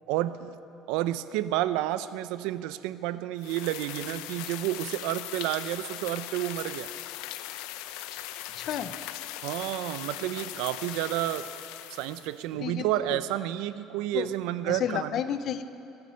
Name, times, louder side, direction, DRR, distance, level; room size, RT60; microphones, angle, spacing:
voice 1, 0.1-0.6 0.9-6.9 9.4-11.5 11.9-15.1, right 14 dB, 80° right, 14 dB, 0.5 m, -30 dB
sound 1, 3.4-12.4, left 13 dB, 90° left, 0.6 m, -39 dB
voice 2, 8.6-8.9 12.6-13.2 14.1-14.3 14.7-15.6, left 9 dB, 40° left, 12 dB, 0.6 m, -31 dB
23.0 x 9.8 x 6.4 m, 2.8 s
cardioid pair, 175°, 0 cm